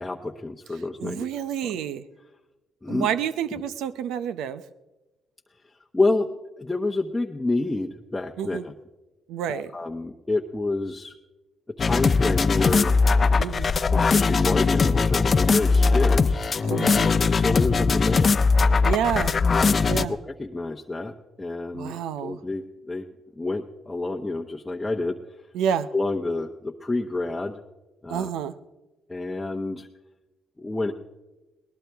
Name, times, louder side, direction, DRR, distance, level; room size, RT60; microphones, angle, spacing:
voice 1, 0.0-1.2 1.6-1.8 2.8-3.1 5.9-6.3 6.6-8.7 9.5-11.1 11.8-12.9 13.9-16.5 17.2-18.4 19.6-21.9 22.2-23.1 23.4-25.2 25.9-27.6 28.0-28.3 29.1-29.9 30.6-30.9, left 2 dB, 15° left, 1 dB, 0.9 m, -28 dB
voice 2, 1.0-2.0 2.9-4.6 8.4-8.6 9.3-9.7 13.4-13.7 16.6-17.1 18.8-19.3 19.9-20.1 21.7-22.4 25.5-25.9 28.1-28.5, right 9 dB, 90° right, 13 dB, 0.7 m, -28 dB
sound 1, 11.8-20.1, left 4 dB, 40° left, 0.7 m, -20 dB
21.0 x 18.5 x 3.5 m, 1.1 s
cardioid pair, 90°, 0 cm